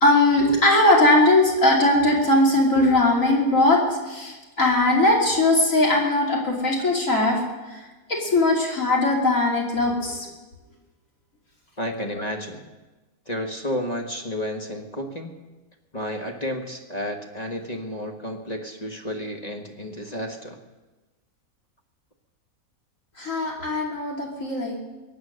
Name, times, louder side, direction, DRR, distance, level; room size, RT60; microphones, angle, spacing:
voice 1, 0.0-7.4 7.7-7.8 8.1-10.3 23.2-24.8, left 2 dB, 60° left, -2 dB, 3.1 m, -20 dB
voice 2, 11.8-12.6 13.3-15.4 15.9-20.6, left 1 dB, 30° left, 2 dB, 1.5 m, -31 dB
23.0 x 8.8 x 6.5 m, 1.2 s
omnidirectional pair, 1.5 m